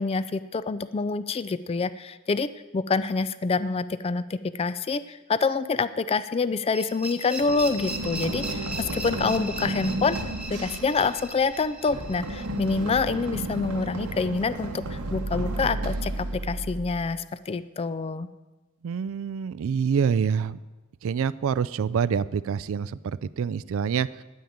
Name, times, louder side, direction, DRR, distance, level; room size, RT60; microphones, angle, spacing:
voice 1, 0.0-10.2 10.5-18.3, left 4 dB, 25° left, 14 dB, 0.3 m, -27 dB
sound 1, 6.7-13.6, right 1 dB, 5° right, 1.2 m, -38 dB
Run, 7.4-17.2, right 2 dB, 85° right, 1.0 m, -33 dB
voice 2, 18.8-20.6 21.0-24.2, right 6 dB, 65° right, 17 dB, 0.3 m, -26 dB
10.5 x 9.4 x 8.6 m, 1.2 s
head